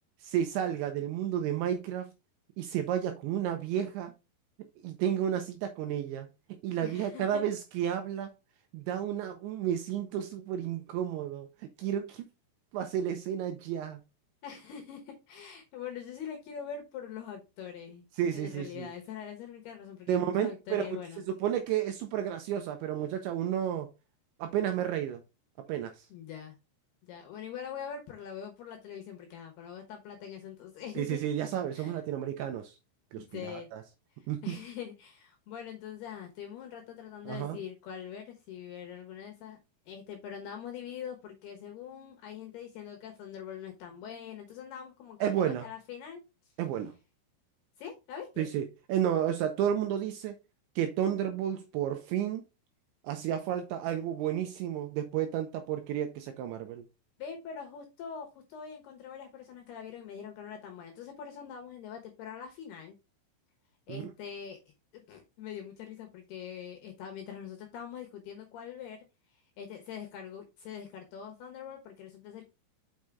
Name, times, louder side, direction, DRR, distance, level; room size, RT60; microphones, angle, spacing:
voice 1, 0.2-2.1 2.6-4.1 4.8-6.3 6.6-8.3 8.7-12.3 12.7-14.0 18.2-18.9 20.1-20.8 21.4-23.9 24.4-25.2 25.7-26.1 31.0-32.8 33.1-33.8 34.3-34.5 37.3-37.6 45.2-45.7 46.6-46.9 48.4-50.3 50.8-52.4 53.0-56.8 63.9-64.0, right 10 dB, 80° right, 2.7 m, -32 dB
voice 2, 6.8-7.5 14.4-18.1 18.3-21.2 26.1-26.6 27.0-31.3 31.7-32.0 33.2-33.7 34.1-39.6 39.9-46.2 47.8-48.5 57.2-63.0 63.9-69.0 69.3-72.4, left 8 dB, 70° left, 2.5 m, -43 dB
6.4 x 6.0 x 3.4 m
omnidirectional pair, 5.9 m